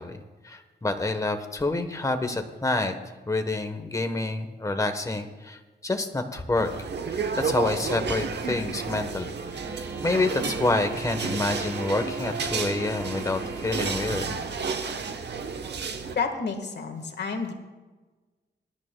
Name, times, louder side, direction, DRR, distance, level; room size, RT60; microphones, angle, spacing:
voice 1, 0.0-2.9 3.3-9.3 10.0-14.3, left 2 dB, 15° left, 7 dB, 1.0 m, -28 dB
sound 1, 6.5-16.2, right 5 dB, 65° right, 0.9 m, -32 dB
sound 2, 9.3-14.3, right 2 dB, 15° right, 0.5 m, -40 dB
sound 3, 10.1-15.6, right 3 dB, 45° right, 1.6 m, -49 dB
voice 2, 16.1-17.5, left 5 dB, 65° left, 5 dB, 1.5 m, -30 dB
22.0 x 11.5 x 2.2 m, 1.3 s
wide cardioid pair, 110°, 19 cm